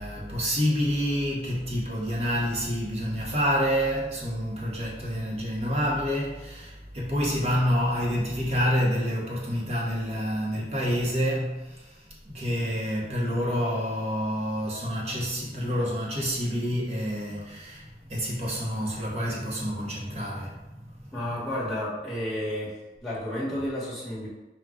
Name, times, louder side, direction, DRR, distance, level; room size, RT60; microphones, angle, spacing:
voice 1, 0.0-11.9 12.3-20.6, equal, 35° right, 0.9 m, -28 dB
voice 2, 21.1-22.8 23.0-24.3, left 1 dB, ahead, 1.2 m, -31 dB
4.8 x 2.3 x 3.7 m
head